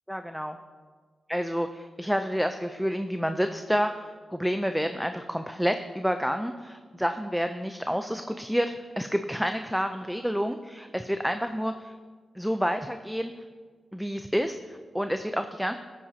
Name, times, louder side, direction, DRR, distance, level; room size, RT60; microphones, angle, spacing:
voice 1, 0.1-0.6 1.3-11.9 12.4-13.3 13.9-15.7, equal, ahead, 7 dB, 0.5 m, -29 dB
15.5 x 8.6 x 2.8 m, 1.6 s
cardioid pair, 60°, 0 cm